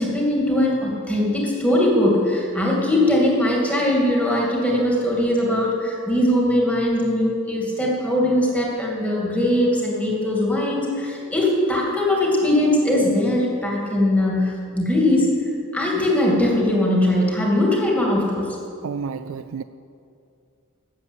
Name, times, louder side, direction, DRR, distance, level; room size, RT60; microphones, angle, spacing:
voice 1, 0.0-15.3 15.7-18.5, left 1 dB, 5° left, 2.5 m, -20 dB
voice 2, 18.8-19.6, right 6 dB, 65° right, 0.4 m, -30 dB
13.0 x 7.7 x 8.1 m
head